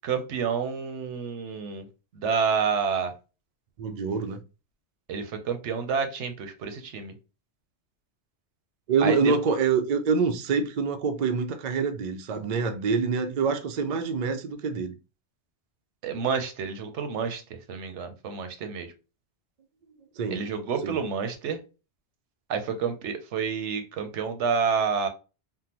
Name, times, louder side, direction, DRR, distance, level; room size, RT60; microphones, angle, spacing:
voice 1, 0.0-1.9 2.1-3.1 5.1-7.1 9.0-9.3 16.0-18.9 20.3-21.6 22.5-25.1, right 6 dB, 85° right, 1.0 m, -29 dB
voice 2, 3.8-4.4 8.9-14.9 20.2-20.4 20.8-21.0, right 5 dB, 55° right, 0.5 m, -26 dB
3.6 x 2.1 x 2.8 m
omnidirectional pair, 1.2 m